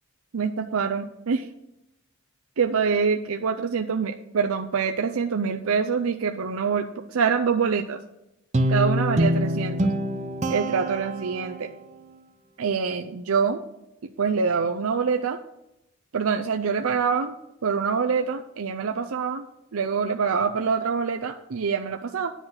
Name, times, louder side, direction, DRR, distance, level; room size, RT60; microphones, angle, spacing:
voice 1, 0.3-1.5 2.6-8.0 8.7-9.9 10.5-11.7 12.6-13.6 14.2-15.4 16.1-17.3 17.6-19.4 19.7-22.3, right 5 dB, 80° right, 5 dB, 0.5 m, -25 dB
Guitar, 8.5-11.8, right 1 dB, 35° right, 0.7 m, -25 dB
10.0 x 5.8 x 7.8 m, 0.88 s
head